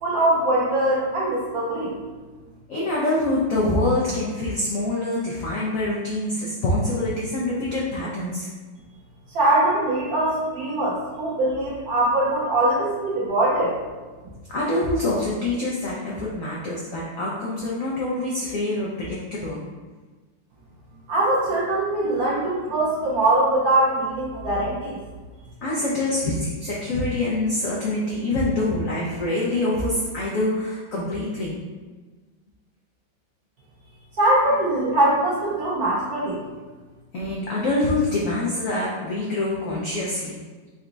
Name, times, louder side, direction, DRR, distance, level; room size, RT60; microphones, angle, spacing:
voice 1, 0.0-2.0 9.3-13.8 21.1-25.0 34.2-36.4, right 1 dB, 55° right, -7 dB, 1.3 m, -22 dB
voice 2, 2.7-8.5 14.5-19.6 25.6-31.6 37.1-40.4, left 2 dB, 80° left, -5 dB, 0.7 m, -25 dB
4.0 x 2.2 x 3.8 m, 1.3 s
omnidirectional pair, 2.1 m